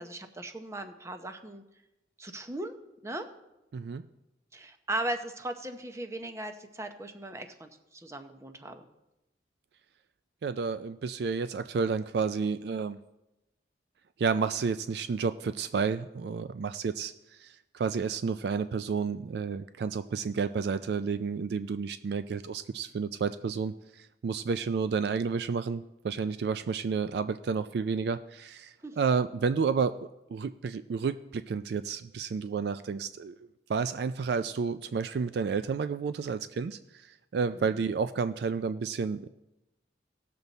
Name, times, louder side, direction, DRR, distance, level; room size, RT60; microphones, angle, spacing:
voice 1, 0.0-1.6 2.2-3.3 4.5-8.9 28.8-29.0 37.5-37.8, right 1 dB, 15° right, 6 dB, 0.7 m, -38 dB
voice 2, 10.4-13.0 14.2-30.0 30.3-33.4 33.7-39.3, right 5 dB, 60° right, 11 dB, 0.3 m, -31 dB
17.5 x 6.8 x 4.0 m, 0.95 s
head